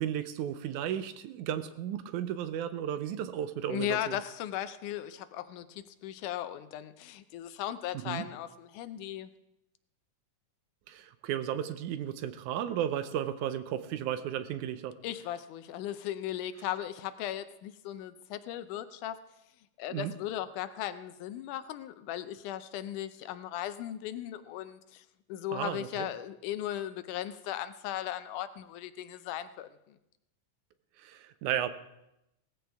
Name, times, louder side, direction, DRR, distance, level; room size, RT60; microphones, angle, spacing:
voice 1, 0.0-4.2 8.1-8.3 10.9-15.0 19.9-20.1 25.5-26.1 31.0-31.7, right 10 dB, 80° right, 11 dB, 2.1 m, -34 dB
voice 2, 3.7-9.3 15.0-19.2 19.8-25.0 25.3-30.0, left 12 dB, 85° left, 12 dB, 2.2 m, -37 dB
18.0 x 14.5 x 3.5 m, 0.86 s
omnidirectional pair, 3.5 m